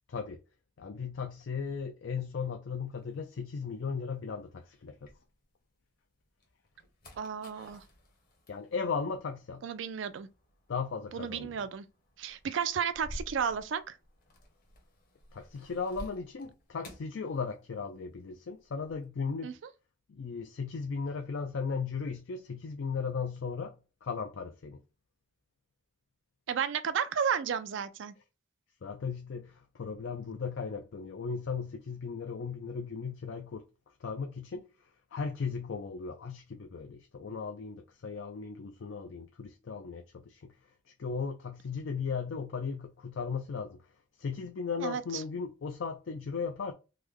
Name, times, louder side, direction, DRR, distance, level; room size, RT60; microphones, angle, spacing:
voice 1, 0.1-0.4 0.8-5.1 8.5-9.6 10.7-11.7 15.3-19.5 20.1-23.8 24.0-24.8 28.8-33.7 34.0-34.6 35.1-40.5 41.0-43.8 44.2-46.7, left 5 dB, 65° left, 0.4 m, -36 dB
sound 1, 3.0-5.8 6.2-18.0 18.3-19.1, equal, 50° left, 1.0 m, -52 dB
voice 2, 7.2-7.8 9.6-10.3 11.1-11.8 12.2-13.9 19.4-19.5 26.5-28.1 44.8-45.0, right 7 dB, 65° right, 0.4 m, -32 dB
3.2 x 2.1 x 3.5 m
head